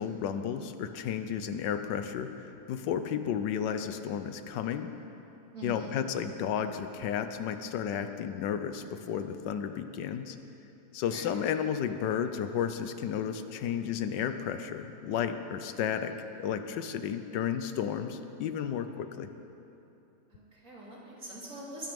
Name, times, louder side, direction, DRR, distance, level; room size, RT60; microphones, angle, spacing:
voice 1, 0.0-4.9 5.6-10.4 10.9-16.1 16.4-19.3, left 8 dB, 85° left, 9 dB, 1.4 m, -33 dB
voice 2, 5.5-5.9 11.0-11.3 20.3-21.9, right 1 dB, 50° right, -7 dB, 3.7 m, -43 dB
22.5 x 9.2 x 5.2 m, 2.9 s
omnidirectional pair, 1.9 m